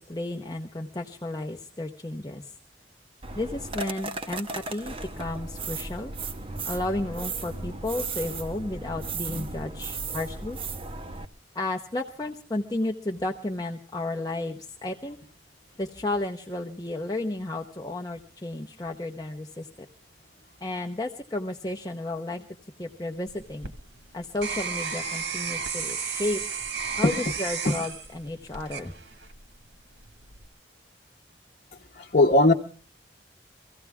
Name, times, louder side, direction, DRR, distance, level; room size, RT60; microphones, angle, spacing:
voice 1, 0.0-2.5 3.3-6.1 6.6-10.6 11.5-15.2 15.8-19.9 20.6-22.4 22.8-23.7 24.1-26.4 27.0-28.9, left 2 dB, 20° left, 1 dB, 0.8 m, -32 dB
sound 1, 3.2-11.2, right 3 dB, 30° right, 0.8 m, -35 dB
sound 2, 23.3-29.5 30.0-30.5, right 5 dB, 80° right, 1.7 m, -33 dB
voice 2, 32.0-32.5, left 2 dB, 45° left, 1 dB, 1.1 m, -18 dB
24.0 x 16.0 x 3.5 m, 0.38 s
head